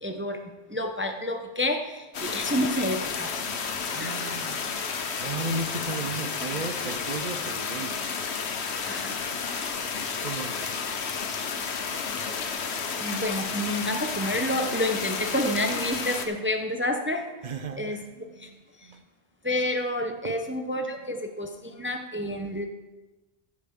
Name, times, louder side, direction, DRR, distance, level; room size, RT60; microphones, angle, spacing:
voice 1, 0.0-3.4 4.0-4.2 8.9-9.3 11.8-12.0 13.0-17.3 17.8-18.0 18.4-18.5 19.4-22.7, left 1 dB, 15° right, 5 dB, 0.7 m, -29 dB
sound 1, 2.1-16.3, left 5 dB, 75° left, 1.2 m, -31 dB
voice 2, 3.8-4.8 5.2-8.1 10.2-10.8 17.4-19.0 20.2-20.4 21.6-21.8, right 3 dB, 45° right, 8 dB, 0.8 m, -36 dB
15.0 x 8.7 x 3.7 m, 1.1 s
omnidirectional pair, 1.1 m